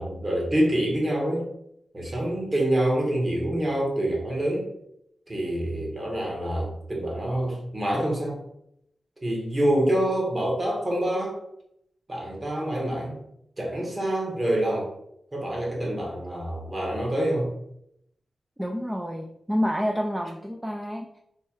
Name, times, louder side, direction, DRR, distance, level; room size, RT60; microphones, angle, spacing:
voice 1, 0.0-1.5 1.9-4.7 5.3-8.4 9.2-11.3 12.1-13.2 13.6-14.9 15.3-17.5, right 1 dB, 30° right, -2 dB, 1.3 m, -26 dB
voice 2, 18.6-21.2, equal, 10° right, 1 dB, 0.3 m, -28 dB
3.2 x 2.3 x 4.3 m, 0.76 s
wide cardioid pair, 115°, 0 cm